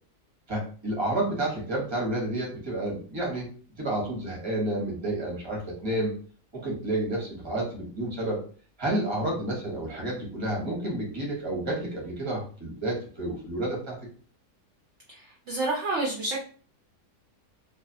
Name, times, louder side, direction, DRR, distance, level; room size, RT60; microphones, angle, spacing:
voice 1, 0.5-3.5 3.8-6.1 6.5-8.4 8.8-14.0, right 1 dB, 25° right, -3 dB, 0.7 m, -30 dB
voice 2, 15.5-16.4, right 2 dB, 70° right, -1 dB, 0.6 m, -28 dB
2.5 x 2.3 x 2.5 m, 0.43 s
omnidirectional pair, 1.7 m